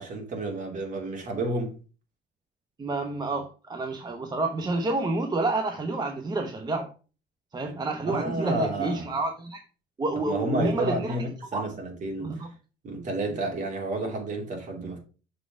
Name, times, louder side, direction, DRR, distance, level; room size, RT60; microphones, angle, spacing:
voice 1, 0.0-1.7 8.0-9.1 10.2-12.3 12.8-15.0, right 2 dB, 50° right, 2.9 m, -31 dB
voice 2, 2.8-6.9 7.5-9.6 10.0-11.2 11.5-11.6 12.2-12.5 13.3-13.4, right 2 dB, 25° right, 0.9 m, -29 dB
6.6 x 4.3 x 4.8 m
cardioid pair, 110°, 17 cm